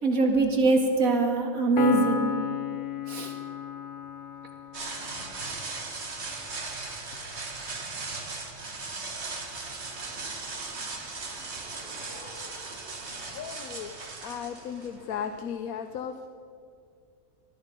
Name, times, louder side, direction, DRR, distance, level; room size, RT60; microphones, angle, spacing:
voice 1, 0.0-2.3 3.1-3.3, right 3 dB, 75° right, 3 dB, 2.4 m, -23 dB
Piano, 1.8-5.4, left 9 dB, 60° left, 1.1 m, -33 dB
sound 1, 4.7-15.4, right 3 dB, 50° right, 1.9 m, -38 dB
voice 2, 9.0-9.6 13.3-16.3, left 8 dB, 80° left, 8 dB, 1.2 m, -37 dB
20.0 x 13.5 x 5.3 m, 2.5 s
omnidirectional pair, 1.5 m